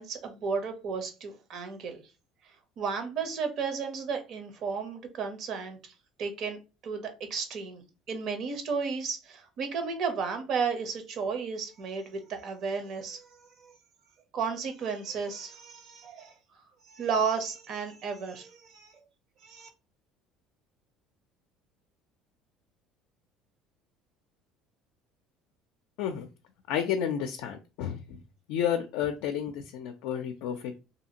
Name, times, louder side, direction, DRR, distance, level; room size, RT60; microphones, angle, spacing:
voice 1, 0.0-2.0 2.8-5.8 6.2-13.7 14.3-16.3 16.8-18.9 19.4-19.7, right 5 dB, 55° right, 6 dB, 0.8 m, -33 dB
voice 2, 26.0-26.3 26.7-28.2 28.5-30.8, left 8 dB, 80° left, 6 dB, 0.4 m, -31 dB
2.7 x 2.4 x 2.8 m, 0.30 s
cardioid pair, 120°, 0 cm